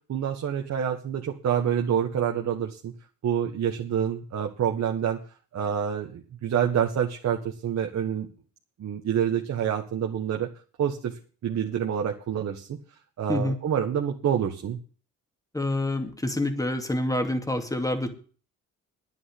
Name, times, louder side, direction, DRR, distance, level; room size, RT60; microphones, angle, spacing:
voice 1, 0.1-2.9 3.2-5.2 5.5-8.3 8.8-10.5 10.8-11.1 11.4-12.8 13.2-14.8, right 8 dB, 60° right, 2 dB, 1.7 m, -27 dB
voice 2, 15.5-18.1, left 1 dB, 10° left, 6 dB, 2.5 m, -27 dB
10.0 x 9.3 x 8.0 m, 0.39 s
cardioid pair, 90°, 30 cm